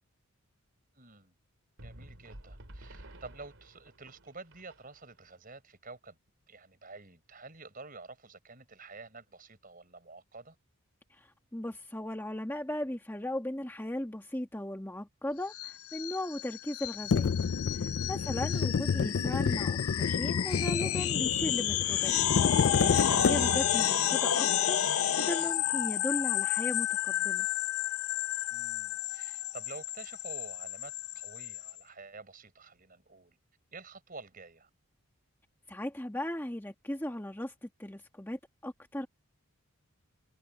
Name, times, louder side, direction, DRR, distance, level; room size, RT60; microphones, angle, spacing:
voice 1, 1.0-1.3 1.8-6.2 6.5-10.6 18.2-18.3 23.3-23.6 28.5-33.4 33.7-34.7, right 3 dB, 40° right, 5.4 m, -49 dB
sound 1, 1.8-5.3, right 1 dB, 65° right, 3.7 m, -51 dB
voice 2, 11.1-17.3 17.7-22.1 22.8-24.8 25.2-27.5 35.7-39.1, left 1 dB, 10° left, 1.4 m, -37 dB
sound 2, 15.5-31.7, left 11 dB, 75° left, 0.8 m, -31 dB
sound 3, 17.1-23.8, left 5 dB, 55° left, 0.4 m, -30 dB
head